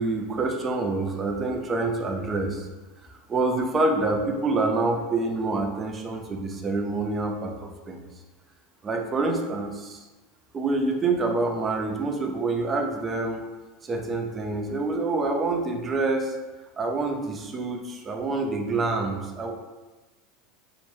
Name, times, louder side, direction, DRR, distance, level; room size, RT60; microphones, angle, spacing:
voice 1, 0.0-2.7 3.3-8.0 8.8-10.0 10.5-13.4 13.8-16.3 16.8-19.5, right 3 dB, 20° right, 2 dB, 0.5 m, -27 dB
4.6 x 2.1 x 3.0 m, 1.2 s
supercardioid pair, 140°, 0 cm